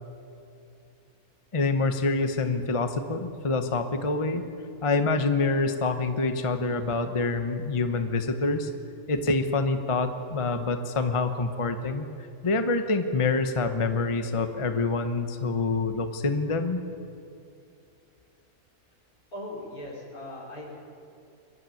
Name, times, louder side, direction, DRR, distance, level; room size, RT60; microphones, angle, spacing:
voice 1, 1.5-4.4 4.8-8.7 9.1-16.8, left 3 dB, 25° left, 8 dB, 0.8 m, -26 dB
voice 2, 19.3-20.6, left 1 dB, 75° left, -2 dB, 4.7 m, -39 dB
23.0 x 12.5 x 9.1 m, 2.6 s
omnidirectional pair, 1.6 m